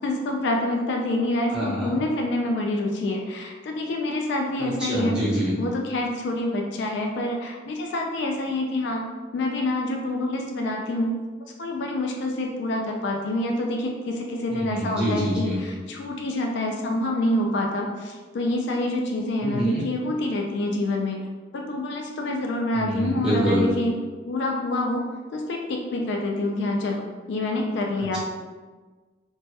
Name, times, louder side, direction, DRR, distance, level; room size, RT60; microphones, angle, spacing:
voice 1, 0.0-5.2 5.6-9.0 9.3-11.1 11.6-21.2 21.5-23.9 24.2-25.0 25.3-28.2, left 1 dB, 65° left, 1 dB, 0.3 m, -27 dB
voice 2, 1.5-2.0 4.6-5.6 14.5-15.6 19.4-19.9 22.7-23.7, equal, 5° right, -11 dB, 0.9 m, -26 dB
3.2 x 2.2 x 2.7 m, 1.4 s
head